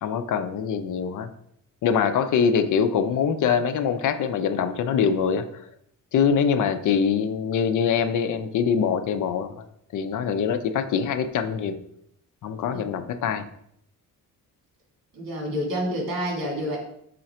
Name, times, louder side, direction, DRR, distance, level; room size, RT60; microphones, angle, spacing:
voice 1, 0.0-1.3 1.8-5.5 6.1-9.6 9.9-11.8 12.4-13.5, left 7 dB, 60° left, 7 dB, 0.6 m, -24 dB
voice 2, 15.1-16.8, equal, 70° right, -1 dB, 2.2 m, -28 dB
5.7 x 3.8 x 4.3 m, 0.72 s
cardioid pair, 140°, 35 cm